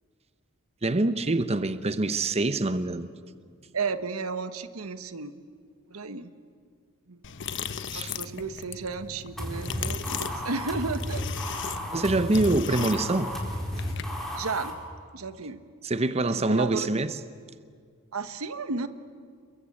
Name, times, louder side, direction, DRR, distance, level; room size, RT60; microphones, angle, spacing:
voice 1, 0.8-3.1 7.9-8.1 11.9-13.3 15.8-17.2, right 2 dB, 30° right, 0.8 m, -25 dB
voice 2, 3.7-5.4 5.9-6.3 7.1-7.2 7.9-11.2 14.4-14.8 15.1-15.6 16.4-17.0 18.1-18.9, right 4 dB, 90° right, 1.3 m, -33 dB
sound 1, 7.2-14.2, left 7 dB, 60° left, 1.1 m, -38 dB
sound 2, 9.4-14.7, equal, ahead, 4.4 m, -33 dB
30.0 x 22.5 x 8.6 m
head